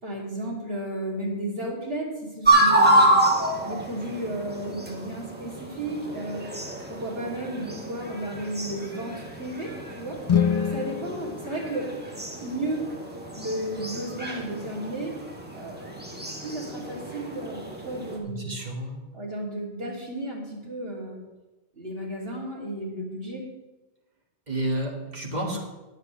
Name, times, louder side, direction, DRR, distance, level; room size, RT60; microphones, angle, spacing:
voice 1, 0.0-3.2 3.6-6.5 6.9-10.2 10.5-11.9 12.4-12.8 13.3-15.1 15.5-15.9 16.2-18.5 19.1-21.2 21.7-23.4, right 1 dB, 55° right, -4 dB, 3.3 m, -33 dB
sound 1, 2.4-18.2, right 1 dB, 10° right, 1.7 m, -27 dB
sound 2, 10.2-12.4, left 7 dB, 45° left, 0.4 m, -27 dB
voice 2, 18.3-19.0 24.5-25.6, right 1 dB, 40° right, -1 dB, 2.2 m, -30 dB
20.5 x 7.9 x 3.3 m, 1.1 s
omnidirectional pair, 1.2 m